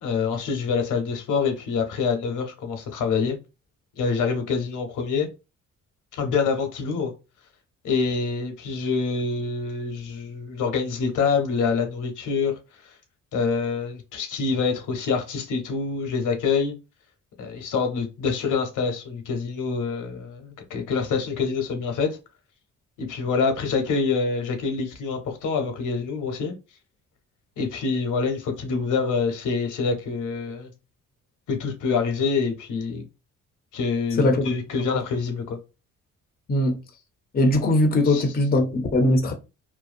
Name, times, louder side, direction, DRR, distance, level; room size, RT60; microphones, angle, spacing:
voice 1, 0.0-3.4 4.0-5.3 6.1-7.1 7.8-12.5 13.3-16.7 17.4-22.2 23.0-26.5 27.6-30.7 31.5-33.0 33.7-35.6 38.1-38.2, left 5 dB, 75° left, 0.9 m, -26 dB
voice 2, 37.3-39.3, left 1 dB, 30° left, 0.6 m, -20 dB
2.6 x 2.2 x 2.5 m
cardioid pair, 100°, 31 cm